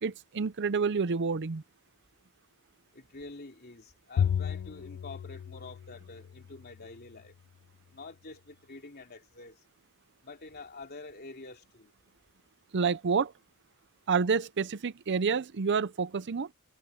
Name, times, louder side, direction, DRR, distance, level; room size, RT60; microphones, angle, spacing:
voice 1, 0.0-1.6 12.7-13.3 14.1-16.5, right 5 dB, 55° right, 0.6 m, -28 dB
voice 2, 2.9-7.3 7.9-9.6 10.2-11.9, left 3 dB, 45° left, 3.3 m, -47 dB
Bowed string instrument, 4.2-6.7, left 8 dB, 85° left, 0.3 m, -33 dB
head